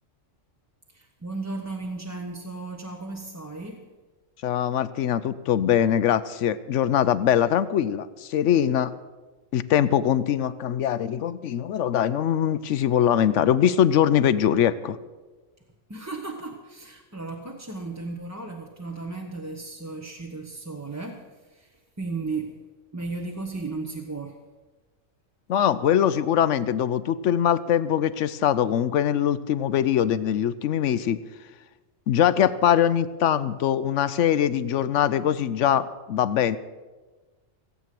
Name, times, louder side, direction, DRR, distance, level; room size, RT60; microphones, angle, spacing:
voice 1, 0.9-3.9 15.9-22.6 22.9-24.4, right 3 dB, 15° right, 1 dB, 0.9 m, -35 dB
voice 2, 4.4-8.9 9.5-15.0 25.5-31.2 32.1-36.6, left 10 dB, 75° left, 15 dB, 1.0 m, -22 dB
16.5 x 8.3 x 7.6 m, 1.3 s
omnidirectional pair, 1.3 m